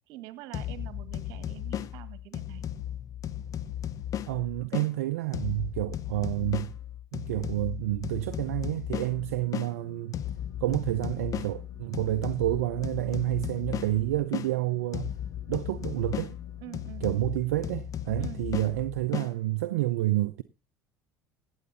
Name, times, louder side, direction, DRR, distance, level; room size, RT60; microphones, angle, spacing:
voice 1, 0.1-2.6 16.6-17.1 18.2-18.4, right 16 dB, 65° right, 1.6 m, -45 dB
sound 1, 0.5-4.9 5.3-9.7 10.1-14.5 14.9-19.3, left 10 dB, 45° left, 1.0 m, -36 dB
voice 2, 4.3-6.7 7.1-10.2 10.6-15.1 15.5-16.4 17.0-20.4, right 16 dB, 80° right, 0.6 m, -29 dB
sound 2, 9.0-16.9, left 8 dB, 85° left, 3.8 m, -51 dB
16.0 x 8.1 x 4.1 m
hypercardioid pair, 75°, 8 cm